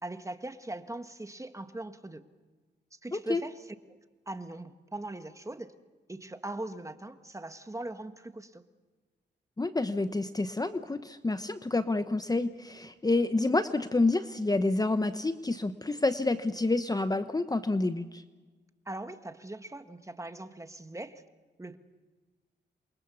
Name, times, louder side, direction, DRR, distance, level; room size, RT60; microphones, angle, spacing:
voice 1, 0.0-2.2 2.9-3.5 4.3-5.7 6.1-8.6 18.8-21.2 21.6-21.8, right 2 dB, 15° right, 9 dB, 1.6 m, -40 dB
voice 2, 3.1-3.4 9.6-18.2, left 2 dB, 20° left, 10 dB, 1.0 m, -28 dB
28.0 x 23.5 x 7.0 m, 1.4 s
cardioid pair, 85°, 19 cm